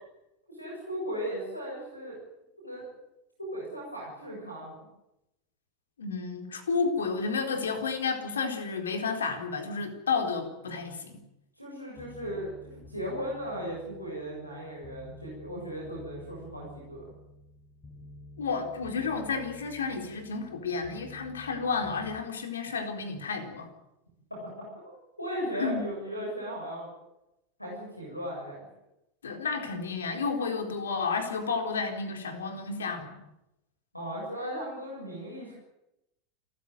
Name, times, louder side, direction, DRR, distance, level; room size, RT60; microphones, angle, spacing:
voice 1, 0.5-2.2 2.6-2.8 3.4-4.8 11.6-12.6 12.9-17.1 24.3-24.4 24.7-26.9 27.6-28.6 33.9-35.5, equal, 90° left, -2 dB, 7.4 m, -37 dB
voice 2, 6.0-11.2 18.4-23.7 25.6-25.8 29.2-33.2, left 5 dB, 70° left, 4 dB, 4.1 m, -31 dB
sound 1, 11.9-22.2, left 1 dB, 30° left, 6.1 m, -50 dB
29.0 x 15.0 x 9.3 m, 0.90 s
figure-of-eight pair, 85°, 0 cm